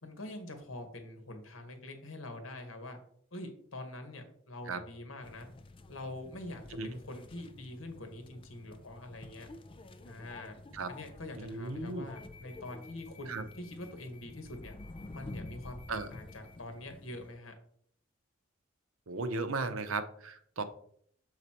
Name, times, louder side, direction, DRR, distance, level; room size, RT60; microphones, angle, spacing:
voice 1, 0.0-3.0 3.3-5.5 5.9-9.5 10.0-10.6 10.9-14.7 15.1-17.5, left 1 dB, 75° left, 6 dB, 1.3 m, -45 dB
sound 1, 5.2-17.3, left 2 dB, 25° left, 0.4 m, -49 dB
voice 2, 11.4-12.1 13.3-13.4 15.9-16.1 19.1-20.6, right 3 dB, 85° right, 10 dB, 0.7 m, -36 dB
6.6 x 4.1 x 4.3 m, 0.63 s
head